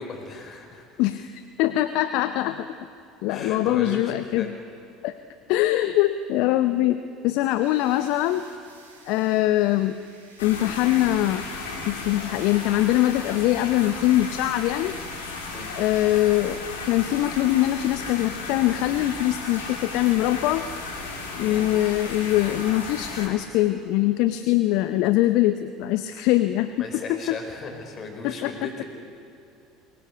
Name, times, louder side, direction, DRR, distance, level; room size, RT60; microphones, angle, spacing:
voice 1, 0.0-1.0 3.3-4.5 15.5-15.7 21.4-21.7 26.8-28.8, left 3 dB, 40° left, 3 dB, 4.8 m, -36 dB
voice 2, 1.0-2.7 3.2-4.5 5.0-5.1 5.5-8.4 9.1-10.0 10.4-11.5 11.9-14.9 15.8-20.6 21.4-27.4 28.2-28.5, left 15 dB, 60° left, 11 dB, 0.7 m, -23 dB
sound 1, 7.5-13.3, right 3 dB, 80° right, 3.8 m, -54 dB
sound 2, 10.4-23.3, left 3 dB, 75° left, 3.7 m, -35 dB
23.0 x 18.5 x 8.3 m, 2.6 s
figure-of-eight pair, 65°, 0 cm